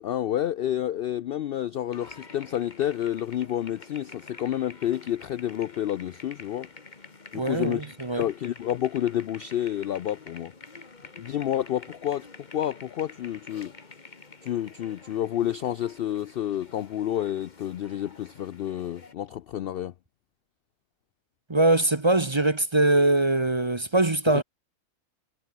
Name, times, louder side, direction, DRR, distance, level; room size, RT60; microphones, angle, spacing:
voice 1, 0.0-6.7 7.3-10.5 11.2-12.3 12.5-13.7 14.4-19.9 24.3-24.4, left 11 dB, 80° left, 0.5 m, -29 dB
sound 1, 1.9-19.1, left 3 dB, 30° left, 1.8 m, -48 dB
voice 2, 7.3-8.2 21.5-24.4, right 2 dB, 20° right, 0.9 m, -22 dB
omnidirectional pair, 1.5 m